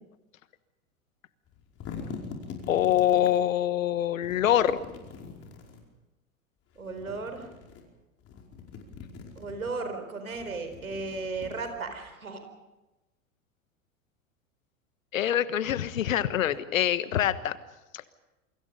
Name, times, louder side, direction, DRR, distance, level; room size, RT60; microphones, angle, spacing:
sound 1, 1.5-3.4 4.2-5.8 6.8-7.8 8.2-9.7 10.3-12.1, left 5 dB, 35° left, 5.1 m, -43 dB
voice 1, 2.7-4.8 15.1-17.6, left 11 dB, 70° left, 14 dB, 1.4 m, -25 dB
voice 2, 6.7-7.5 9.4-12.4, right 3 dB, 85° right, 7 dB, 4.4 m, -35 dB
28.5 x 24.0 x 5.4 m, 1.1 s
figure-of-eight pair, 90°, 41 cm